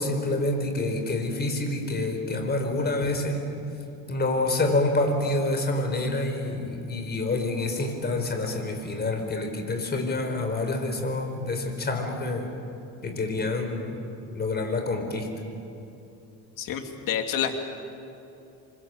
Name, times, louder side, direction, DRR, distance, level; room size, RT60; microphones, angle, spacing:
voice 1, 0.0-3.4 4.1-12.5 13.0-14.0 14.3-15.3, left 2 dB, 25° left, 4 dB, 4.7 m, -27 dB
voice 2, 16.6-17.5, left 9 dB, 60° left, 5 dB, 2.8 m, -28 dB
28.0 x 24.5 x 8.1 m, 2.8 s
cardioid pair, 115°, 37 cm